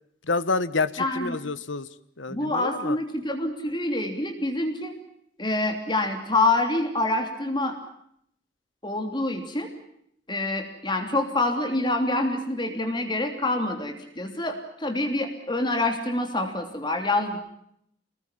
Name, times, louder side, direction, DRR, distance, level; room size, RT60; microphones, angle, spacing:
voice 1, 0.2-1.9 2.2-3.0, left 3 dB, 75° left, 14 dB, 1.5 m, -28 dB
voice 2, 1.0-1.4 2.3-5.0 5.4-7.8 8.8-9.7 10.3-17.4, left 2 dB, 25° left, 4 dB, 3.1 m, -26 dB
29.0 x 20.5 x 7.4 m, 0.72 s
head